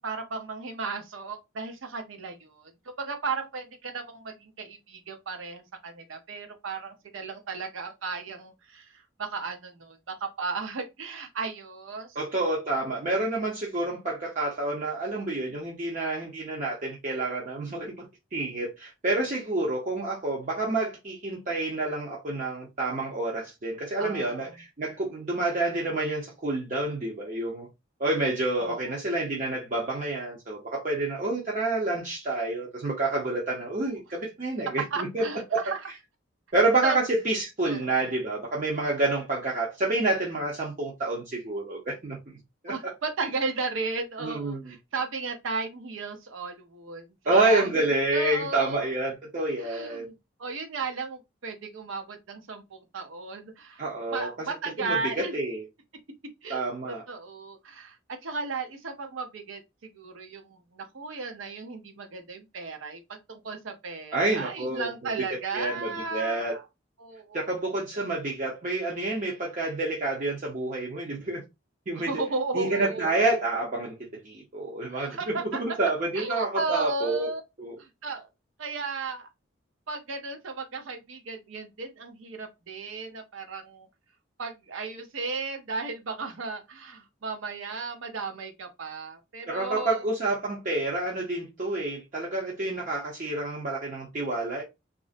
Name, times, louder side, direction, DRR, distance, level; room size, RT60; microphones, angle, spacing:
voice 1, 0.0-12.2 24.0-24.5 28.6-29.0 34.9-35.8 36.8-37.0 37.6-38.0 42.7-48.9 49.6-50.1 50.4-53.8 54.1-55.3 56.4-66.6 67.0-67.5 71.9-73.4 74.9-75.6 76.1-77.4 77.8-78.3 78.6-79.3 79.9-83.9 84.4-90.0, right 4 dB, 85° right, 0.6 m, -35 dB
voice 2, 12.2-18.1 18.3-27.7 28.0-35.3 35.5-35.6 36.5-42.2 42.6-42.9 44.2-44.6 47.2-50.1 53.8-54.5 54.8-55.6 56.5-57.0 64.1-64.9 65.5-66.6 67.3-71.4 71.9-72.1 72.5-77.3 77.6-77.8 89.5-94.6, right 2 dB, 40° right, 0.6 m, -28 dB
2.5 x 2.0 x 2.4 m
head